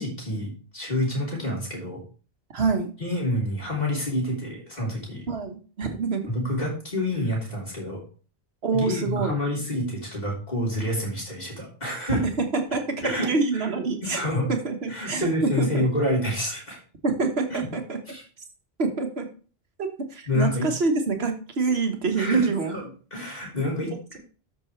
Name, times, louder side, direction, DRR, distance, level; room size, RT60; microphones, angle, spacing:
voice 1, 0.0-2.0 3.0-5.2 6.3-8.0 8.7-12.2 13.0-13.3 13.5-13.7 14.0-14.5 14.9-16.8 17.5-17.7 18.1-18.2 20.3-20.7 22.2-24.2, left 1 dB, 40° left, -3 dB, 4.0 m, -28 dB
voice 2, 2.5-2.9 5.3-6.2 8.6-9.4 12.1-14.2 14.5-15.8 17.0-18.0 18.8-19.3 19.8-22.7, right 4 dB, 70° right, 5 dB, 1.7 m, -26 dB
13.0 x 6.1 x 3.3 m, 0.39 s
omnidirectional pair, 1.1 m